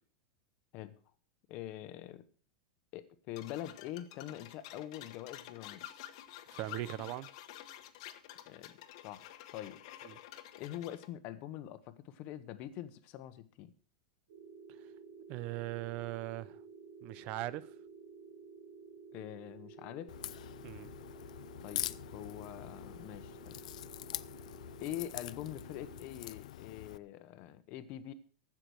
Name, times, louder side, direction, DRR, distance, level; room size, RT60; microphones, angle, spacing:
voice 1, 1.5-2.2 2.9-5.9 8.5-8.7 9.0-9.8 10.6-13.7 19.1-20.1 21.6-23.6 24.8-28.1, left 12 dB, 35° left, 1.0 m, -44 dB
sound 1, 3.4-11.1, left 13 dB, 55° left, 1.1 m, -50 dB
voice 2, 6.5-7.3 10.0-10.2 15.3-16.6 17.0-17.7 20.6-21.0, right 15 dB, 35° right, 0.6 m, -40 dB
sound 2, 14.3-26.1, right 5 dB, 75° right, 2.5 m, -53 dB
Crack, 20.1-27.0, left 13 dB, 85° left, 0.5 m, -44 dB
15.0 x 6.0 x 6.3 m
supercardioid pair, 165°, 4 cm